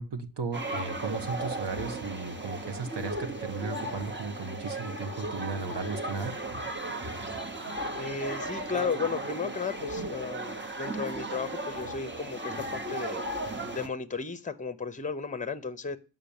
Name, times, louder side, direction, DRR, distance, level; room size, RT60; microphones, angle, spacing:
voice 1, 0.0-6.3, right 4 dB, 70° right, 7 dB, 1.3 m, -35 dB
sound 1, 0.5-13.9, right 2 dB, 25° right, 1.2 m, -36 dB
voice 2, 8.0-13.2 13.7-16.0, left 5 dB, 20° left, 12 dB, 0.8 m, -34 dB
9.1 x 5.7 x 7.1 m, 0.33 s
wide cardioid pair, 130°, 42 cm